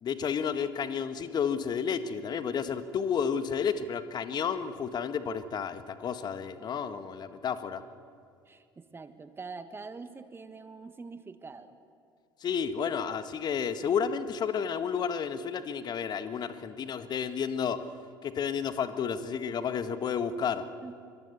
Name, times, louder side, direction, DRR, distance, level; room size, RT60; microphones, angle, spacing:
voice 1, 0.0-7.8 12.4-17.8 18.2-20.6, left 7 dB, 40° left, 10 dB, 1.6 m, -31 dB
voice 2, 8.4-11.8 20.8-20.9, right 4 dB, 20° right, 10 dB, 1.6 m, -44 dB
26.0 x 23.5 x 7.0 m, 2.2 s
figure-of-eight pair, 60°, 11 cm